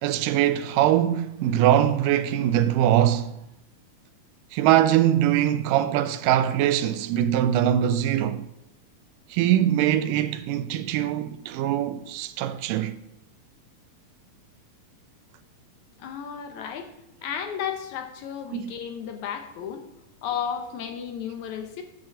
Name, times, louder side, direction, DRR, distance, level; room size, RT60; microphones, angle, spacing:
voice 1, 0.0-3.4 4.5-8.5 9.3-12.9 18.5-18.7, right 11 dB, 85° right, 2.2 m, -22 dB
voice 2, 16.0-16.9 17.2-19.9 20.2-21.8, left 8 dB, 70° left, 2.0 m, -33 dB
9.1 x 5.2 x 7.2 m
omnidirectional pair, 3.8 m